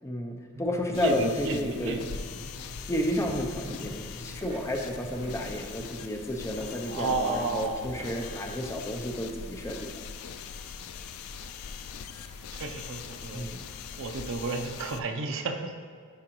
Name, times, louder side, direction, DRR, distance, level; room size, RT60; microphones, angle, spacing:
voice 1, 0.0-2.0 2.9-9.9 13.3-13.6, left 1 dB, 15° left, 3 dB, 0.6 m, -31 dB
sound 1, 0.5-5.9, right 1 dB, 85° right, 1.2 m, -47 dB
sound 2, 0.9-15.0, left 6 dB, 70° left, 0.4 m, -41 dB
voice 2, 0.9-2.2 6.9-8.1 12.6-13.5 13.9-15.9, right 3 dB, 60° right, 4 dB, 0.6 m, -32 dB
sound 3, 3.5-4.1 4.4-8.3, equal, 20° right, 1.4 m, -46 dB
11.0 x 4.8 x 3.0 m, 2.1 s
head